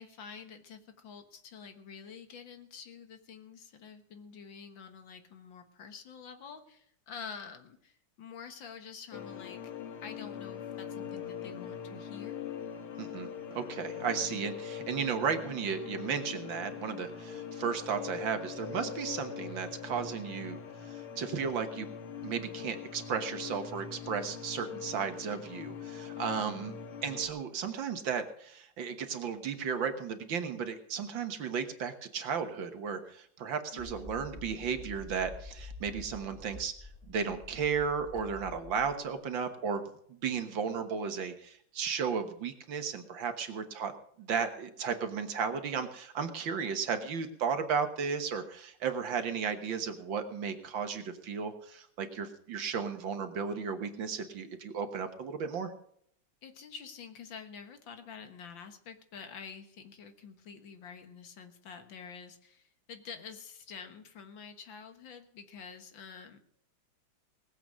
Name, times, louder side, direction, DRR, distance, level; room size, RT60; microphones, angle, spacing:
voice 1, 0.0-9.6 10.0-12.4 26.1-26.8 33.7-34.1 56.4-66.4, left 6 dB, 65° left, 8 dB, 2.1 m, -48 dB
sound 1, 9.1-27.3, left 7 dB, 80° left, 2.2 m, -42 dB
voice 2, 13.0-21.9 22.2-26.7 27.0-43.9 44.2-55.7, right 6 dB, 65° right, 8 dB, 1.9 m, -34 dB
sound 2, 33.8-39.1, left 2 dB, ahead, 2.5 m, -48 dB
19.0 x 7.9 x 6.2 m, 0.67 s
omnidirectional pair, 2.4 m